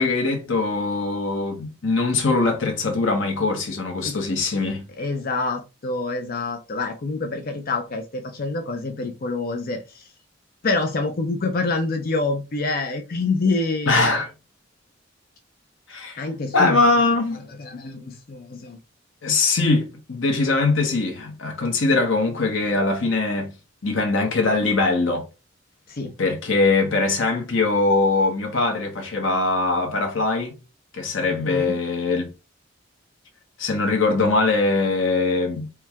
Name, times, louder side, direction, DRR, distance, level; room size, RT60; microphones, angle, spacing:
voice 1, 0.0-4.8 13.9-14.3 15.9-16.2 16.5-17.4 19.2-23.5 23.8-25.2 26.2-30.5 30.9-32.3 33.6-35.7, left 3 dB, 75° left, 1.0 m, -22 dB
voice 2, 5.0-10.1 10.6-14.2 16.2-16.8 17.6-18.8 25.9-26.1 31.4-31.7, left 3 dB, 50° left, 0.6 m, -26 dB
4.5 x 2.3 x 3.5 m
head